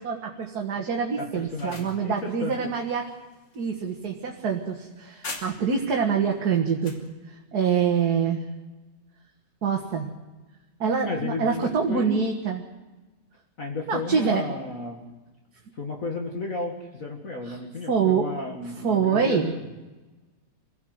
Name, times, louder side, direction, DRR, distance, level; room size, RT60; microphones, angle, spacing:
voice 1, 0.0-3.1 3.6-6.9 7.5-8.4 9.6-10.1 10.8-12.6 13.9-14.4 17.5-17.6 17.9-18.3 18.8-19.5, right 6 dB, 60° right, 1 dB, 2.1 m, -25 dB
voice 2, 1.2-2.6 11.0-12.2 13.6-15.0 15.7-19.7, left 3 dB, 50° left, 1 dB, 2.3 m, -33 dB
sound 1, 1.3-5.9 6.3-7.1, left 2 dB, 85° left, 3.6 m, -43 dB
26.0 x 16.5 x 7.9 m, 1.2 s
omnidirectional pair, 1.9 m